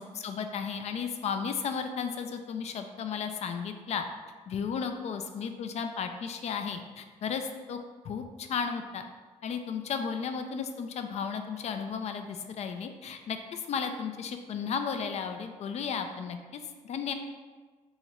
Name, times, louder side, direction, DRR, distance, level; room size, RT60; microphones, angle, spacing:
voice 1, 0.0-4.1 4.5-7.8 8.0-9.0 9.4-17.1, left 6 dB, 55° left, 7 dB, 0.4 m, -34 dB
3.0 x 2.4 x 4.2 m, 1.4 s
cardioid pair, 85°, 13 cm